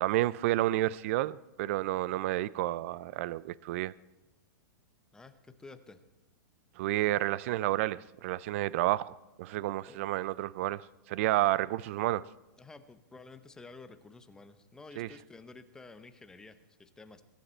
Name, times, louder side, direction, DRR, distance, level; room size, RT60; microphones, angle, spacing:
voice 1, 0.0-3.9 6.8-12.2 15.0-15.1, right 16 dB, 45° right, 0.4 m, -30 dB
voice 2, 5.1-6.0 9.9-10.0 12.6-17.2, left 3 dB, 5° left, 0.8 m, -51 dB
22.0 x 11.5 x 4.4 m
supercardioid pair, 160°, 10 cm